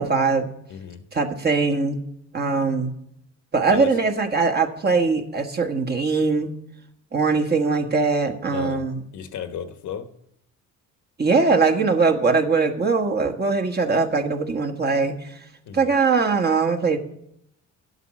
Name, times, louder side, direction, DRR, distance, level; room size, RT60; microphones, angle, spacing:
voice 1, 0.0-0.6 1.1-2.0 2.3-2.9 3.5-6.6 7.1-9.0 11.2-15.4 15.7-17.0, right 4 dB, 30° right, 3 dB, 1.3 m, -21 dB
voice 2, 0.7-1.0 3.7-3.9 8.5-8.8 9.1-10.2 15.7-15.9, left 8 dB, 60° left, 9 dB, 1.2 m, -33 dB
11.0 x 8.2 x 6.4 m, 0.77 s
cardioid pair, 100°, 33 cm